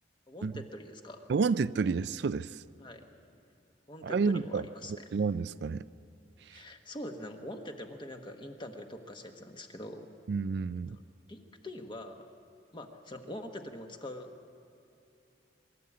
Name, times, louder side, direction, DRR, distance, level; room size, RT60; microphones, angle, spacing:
voice 1, 0.3-1.3 2.8-3.0 3.9-5.0 6.5-10.1 10.9-11.0 11.3-12.3 12.7-14.3, left 1 dB, 25° left, 5 dB, 1.3 m, -44 dB
voice 2, 1.3-2.6 4.0-5.8 6.4-6.6 10.3-11.0, right 4 dB, 65° right, 15 dB, 0.4 m, -30 dB
23.5 x 13.0 x 8.6 m, 2.6 s
head